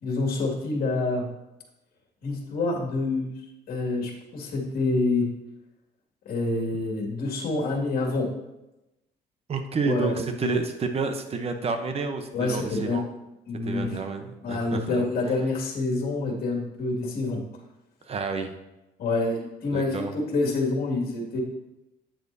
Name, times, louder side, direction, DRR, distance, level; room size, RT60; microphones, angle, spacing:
voice 1, 0.0-1.3 2.2-3.3 3.7-5.3 6.3-8.3 9.8-10.5 12.3-13.0 13.5-13.9 14.4-17.4 19.0-21.4, left 3 dB, 60° left, -2 dB, 2.3 m, -27 dB
voice 2, 9.5-13.0 13.6-15.0 18.1-18.5 19.7-20.1, right 4 dB, 35° right, 6 dB, 0.9 m, -29 dB
8.8 x 7.8 x 2.7 m, 0.95 s
cardioid pair, 110°, 17 cm